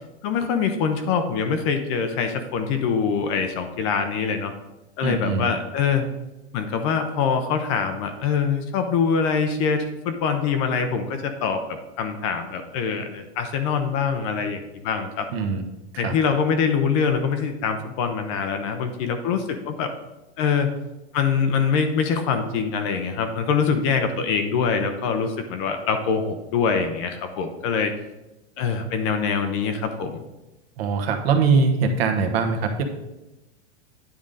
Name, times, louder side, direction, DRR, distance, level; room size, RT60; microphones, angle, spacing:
voice 1, 0.2-4.5 5.0-6.0 6.5-15.3 16.0-19.9 20.4-20.7 21.1-27.9 28.6-30.2, left 6 dB, 30° left, 7 dB, 0.5 m, -24 dB
voice 2, 5.0-5.5 15.3-15.6 15.9-16.1 30.8-32.8, right 5 dB, 60° right, 5 dB, 1.2 m, -22 dB
9.6 x 3.7 x 5.3 m, 0.98 s
supercardioid pair, 160°, 33 cm